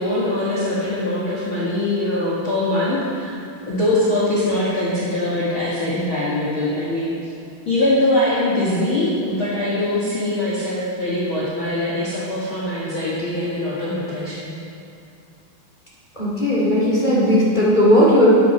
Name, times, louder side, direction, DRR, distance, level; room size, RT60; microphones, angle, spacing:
voice 1, 0.0-3.4 3.7-7.1 7.7-14.6, left 1 dB, 45° left, -8 dB, 1.8 m, -22 dB
voice 2, 16.1-18.4, equal, 15° left, -7 dB, 1.6 m, -16 dB
12.0 x 8.8 x 4.5 m, 2.6 s
omnidirectional pair, 4.5 m